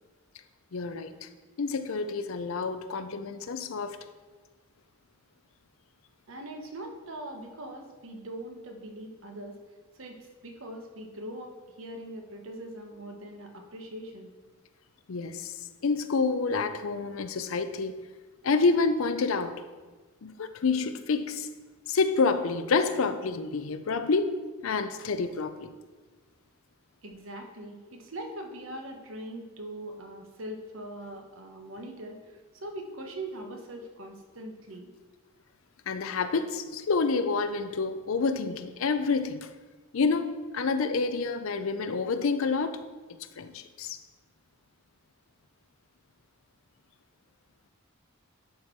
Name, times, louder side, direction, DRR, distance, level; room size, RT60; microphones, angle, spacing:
voice 1, 0.7-1.3 1.6-4.0 15.1-15.5 15.8-17.9 18.4-19.6 20.2-21.5 21.9-24.3 24.6-25.7 35.9-39.4 39.9-42.8 43.4-44.0, left 4 dB, 75° left, 10 dB, 0.5 m, -28 dB
voice 2, 6.3-9.6 9.9-14.3 27.0-34.9, right 1 dB, 75° right, 3 dB, 1.1 m, -41 dB
11.0 x 4.4 x 4.5 m, 1.3 s
head